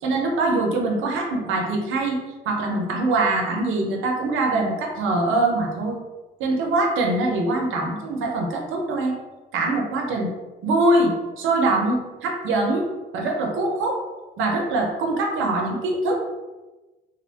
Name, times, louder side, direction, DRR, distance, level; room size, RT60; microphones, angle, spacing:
voice 1, 0.0-2.2 2.5-6.0 6.4-9.1 9.5-10.3 10.6-12.9 13.1-14.0 14.4-16.3, right 2 dB, 85° right, 1 dB, 0.5 m, -23 dB
2.6 x 2.0 x 2.6 m, 1.1 s
cardioid pair, 90°, 20 cm